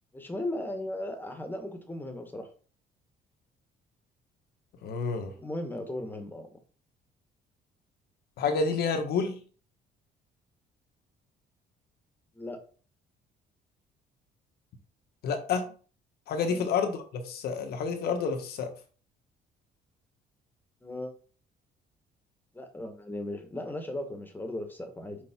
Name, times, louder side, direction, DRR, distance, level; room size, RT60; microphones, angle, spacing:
voice 1, 0.1-2.5 5.3-6.5 12.3-12.6 16.4-16.7 20.8-21.1 22.5-25.2, left 1 dB, 10° left, 5 dB, 1.7 m, -36 dB
voice 2, 4.8-5.3 8.4-9.4 15.2-15.7 16.3-18.7, left 5 dB, 70° left, 6 dB, 1.5 m, -29 dB
6.4 x 4.7 x 4.5 m, 0.40 s
cardioid pair, 110°, 17 cm